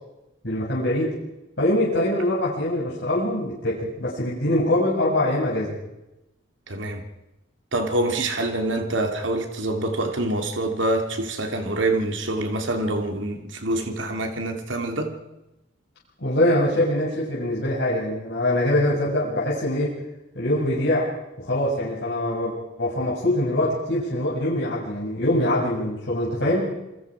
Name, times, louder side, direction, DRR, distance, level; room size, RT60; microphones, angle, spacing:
voice 1, 0.4-1.2 1.6-5.8 16.2-19.9 20.4-21.1 21.4-26.7, left 1 dB, 65° left, 6.9 m, -23 dB
voice 2, 6.7-7.0 7.7-15.1, right 2 dB, 80° right, 3.0 m, -26 dB
28.5 x 24.0 x 5.0 m
head